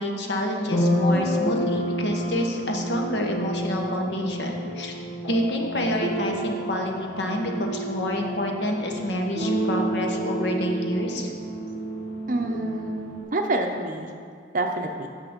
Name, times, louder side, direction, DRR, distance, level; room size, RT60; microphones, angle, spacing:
voice 1, 0.0-4.9 5.3-11.3, equal, 65° left, 2 dB, 1.0 m, -28 dB
sound 1, 0.6-13.2, equal, 90° left, 1.7 m, -29 dB
voice 2, 12.3-14.1 14.5-15.1, right 2 dB, 45° right, 4 dB, 0.6 m, -27 dB
8.5 x 6.3 x 5.1 m, 2.1 s
head